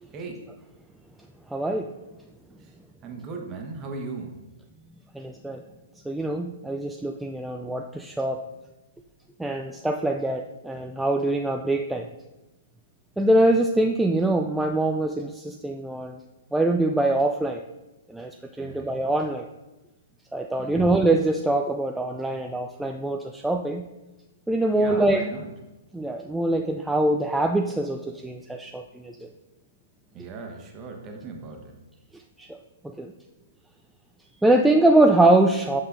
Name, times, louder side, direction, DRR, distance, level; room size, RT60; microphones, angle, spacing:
voice 1, 1.5-1.9 5.1-5.6 6.1-8.4 9.4-12.1 13.2-16.2 16.5-17.6 18.1-19.5 20.3-23.9 24.5-25.3 25.9-29.3 32.1-32.5 32.8-33.1 34.4-35.8, right 2 dB, 5° right, 2 dB, 0.3 m, -23 dB
voice 2, 3.0-4.3 18.5-18.9 20.6-20.9 24.7-25.5 30.1-31.8, right 3 dB, 30° right, 2 dB, 1.1 m, -37 dB
7.8 x 5.4 x 2.6 m, 1.0 s
figure-of-eight pair, 115°, 0 cm